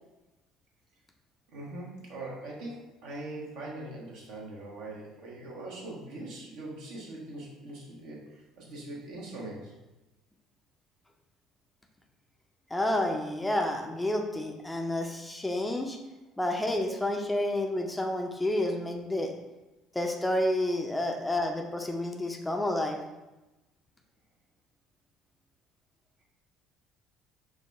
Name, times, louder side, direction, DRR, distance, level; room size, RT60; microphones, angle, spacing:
voice 1, 1.5-9.7, right 2 dB, 70° right, -4 dB, 1.0 m, -42 dB
voice 2, 12.7-16.0 16.4-19.3 19.9-23.0, left 1 dB, 10° left, 2 dB, 0.5 m, -30 dB
4.7 x 2.2 x 3.3 m, 1.0 s
hypercardioid pair, 55°, 0 cm